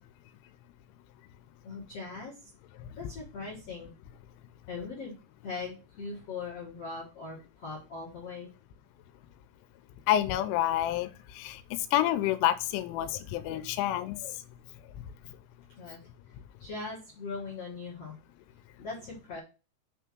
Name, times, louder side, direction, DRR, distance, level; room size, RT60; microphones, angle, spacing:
voice 1, 1.6-2.5 3.0-3.9 4.7-5.1 5.4-8.5 15.8-16.0 16.6-18.2 18.8-19.4, left 4 dB, 55° left, -4 dB, 1.7 m, -40 dB
voice 2, 10.1-11.1 11.4-11.6 11.9-14.3, left 13 dB, 90° left, 11 dB, 3.1 m, -28 dB
6.8 x 3.4 x 6.0 m, 0.33 s
omnidirectional pair, 5.5 m